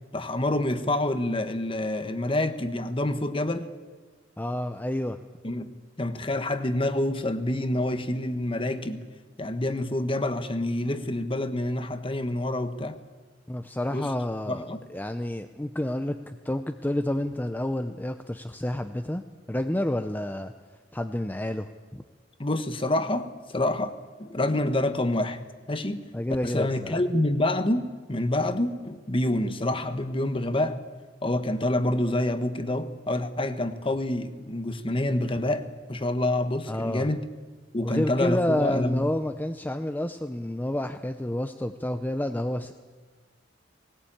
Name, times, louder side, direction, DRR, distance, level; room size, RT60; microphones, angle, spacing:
voice 1, 0.1-3.7 5.4-9.0 9.4-13.0 13.9-14.1 14.5-14.8 22.4-25.4 25.7-26.1 26.4-30.8 31.2-37.2 37.7-39.1, left 1 dB, 30° left, 10 dB, 1.2 m, -27 dB
voice 2, 4.4-5.2 13.5-19.2 19.5-20.5 20.9-22.0 26.1-27.0 36.7-37.1 37.8-42.7, left 1 dB, 10° left, 7 dB, 0.7 m, -29 dB
19.5 x 19.5 x 8.8 m, 1.4 s
head